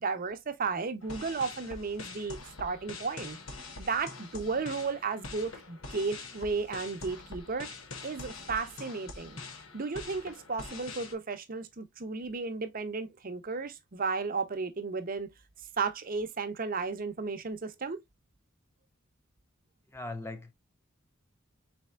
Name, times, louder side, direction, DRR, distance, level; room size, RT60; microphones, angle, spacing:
voice 1, 0.0-3.4 3.8-7.7 8.0-9.4 9.7-15.3 15.8-18.0, right 4 dB, 45° right, 0.7 m, -34 dB
sound 1, 1.0-11.1, left 3 dB, 85° left, 1.1 m, -45 dB
voice 2, 19.9-20.5, left 2 dB, 10° left, 0.5 m, -39 dB
4.3 x 4.1 x 2.3 m
head